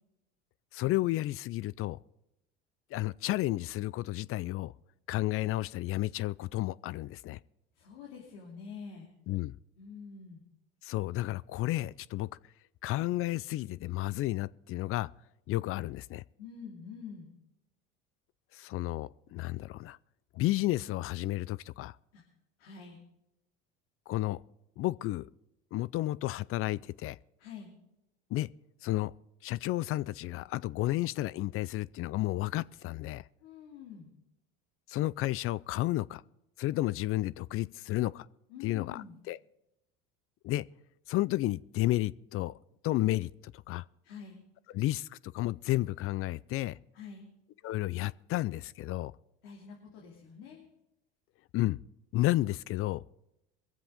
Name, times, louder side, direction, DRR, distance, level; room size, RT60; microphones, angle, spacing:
voice 1, 0.7-2.0 2.9-4.7 5.1-7.4 9.3-9.5 10.8-12.3 12.8-15.1 15.5-16.2 18.5-20.0 20.3-22.0 24.1-24.4 24.8-25.3 25.7-27.2 28.3-28.5 28.8-29.1 29.4-33.2 34.9-36.2 36.6-38.3 38.6-39.4 40.4-40.6 41.1-42.6 42.8-43.8 44.7-46.8 47.6-49.1 51.5-51.8 52.1-53.0, left 17 dB, 50° left, 0.5 m, -32 dB
voice 2, 7.8-9.1 9.8-10.4 16.4-17.3 22.1-22.2 22.6-23.0 27.4-27.7 33.4-34.1 38.5-39.2 44.0-44.4 46.9-47.3 49.4-50.7, left 6 dB, 80° left, 2.9 m, -46 dB
22.5 x 7.7 x 5.1 m
hypercardioid pair, 85°, 29 cm